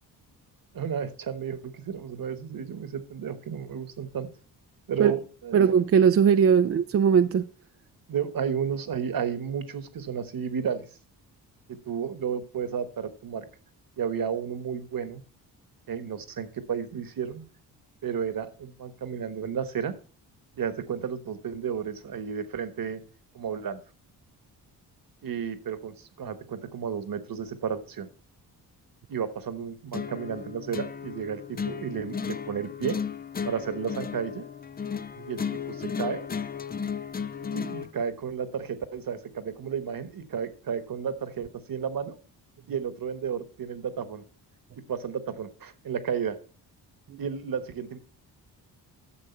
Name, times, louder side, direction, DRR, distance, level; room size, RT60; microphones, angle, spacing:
voice 1, 0.7-4.3 4.9-5.6 6.6-6.7 8.1-10.8 11.8-13.4 14.0-15.2 15.9-17.4 18.0-19.9 20.6-23.0 23.3-23.8 25.2-28.1 29.1-33.0 33.4-34.4 35.3-35.4 35.7-36.3 37.5-42.2 42.7-44.2 44.9-46.4 47.2-48.0, right 7 dB, 55° right, 1.3 m, -32 dB
voice 2, 5.5-7.5, right 7 dB, 35° right, 0.4 m, -19 dB
sound 1, 29.9-37.9, left 6 dB, 25° left, 0.4 m, -34 dB
10.0 x 6.4 x 4.4 m
supercardioid pair, 60°, 42 cm